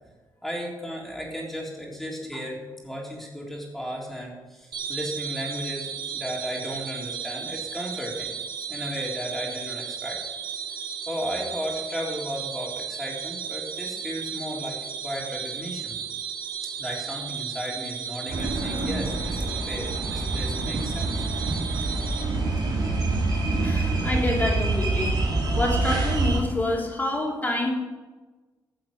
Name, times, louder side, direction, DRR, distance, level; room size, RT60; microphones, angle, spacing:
voice 1, 0.4-8.3 8.7-10.2 11.1-14.8 15.0-16.0 16.8-21.2, equal, 5° left, -3 dB, 3.6 m, -34 dB
sound 1, 4.7-22.2, right 7 dB, 85° right, 3.2 m, -34 dB
sound 2, 18.3-26.4, right 2 dB, 60° right, 3.9 m, -26 dB
voice 2, 23.6-25.1 25.6-27.7, left 2 dB, 20° left, -2 dB, 3.0 m, -27 dB
15.0 x 7.8 x 6.4 m, 1.3 s
cardioid pair, 125°, 8 cm